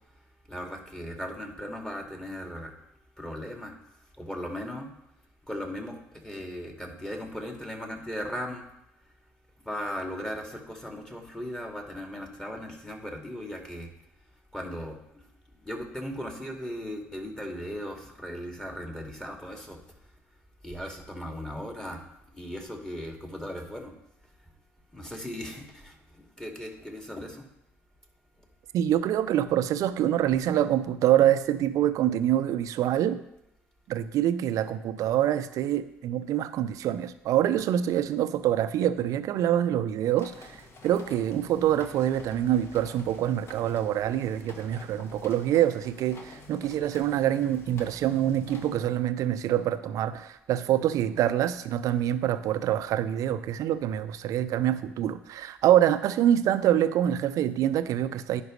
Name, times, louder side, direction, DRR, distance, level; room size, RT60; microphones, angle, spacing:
voice 1, 0.5-2.7 3.2-3.7 4.2-4.9 5.5-8.6 9.7-13.9 14.5-15.2 15.6-19.8 20.6-22.0 22.3-23.9 24.9-26.0 26.4-27.5, equal, 10° left, 1 dB, 2.4 m, -37 dB
voice 2, 28.7-33.2 33.9-40.5 40.8-58.4, right 11 dB, 55° right, 13 dB, 0.6 m, -25 dB
sound 1, 40.2-48.8, left 2 dB, 40° left, 1.5 m, -47 dB
15.5 x 5.2 x 3.2 m, 0.82 s
hypercardioid pair, 55°, 7 cm